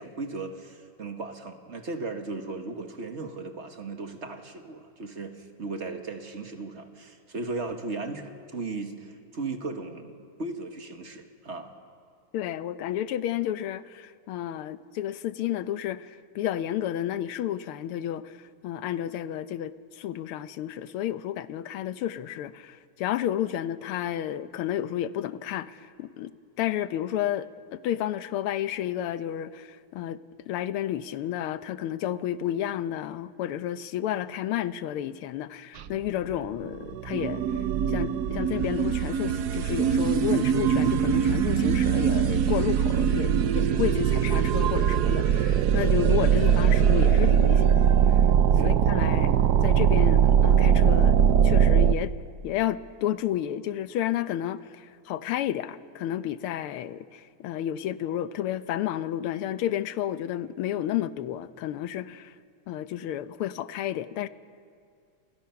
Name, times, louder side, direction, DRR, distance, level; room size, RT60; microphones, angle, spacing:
voice 1, 0.0-10.1 10.4-11.7 48.6-48.8, right 3 dB, 35° right, 1.7 m, -36 dB
voice 2, 12.3-30.2 30.5-37.4 37.9-48.2 48.6-51.2 51.4-52.1 52.4-62.3 62.7-64.3, left 11 dB, 80° left, 1.7 m, -31 dB
sound 1, 35.8-35.9 36.3-36.4 36.7-51.9, right 8 dB, 65° right, 1.0 m, -21 dB
29.0 x 24.0 x 5.8 m
omnidirectional pair, 2.4 m